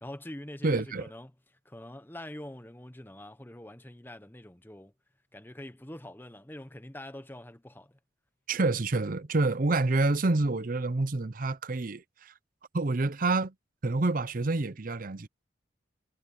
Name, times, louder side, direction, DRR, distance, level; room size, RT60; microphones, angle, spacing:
voice 1, 0.0-4.9 5.3-8.0, left 1 dB, 10° left, 0.9 m, -44 dB
voice 2, 0.6-1.1 8.5-12.3 12.7-13.5 13.8-15.3, right 2 dB, 45° right, 0.7 m, -28 dB
head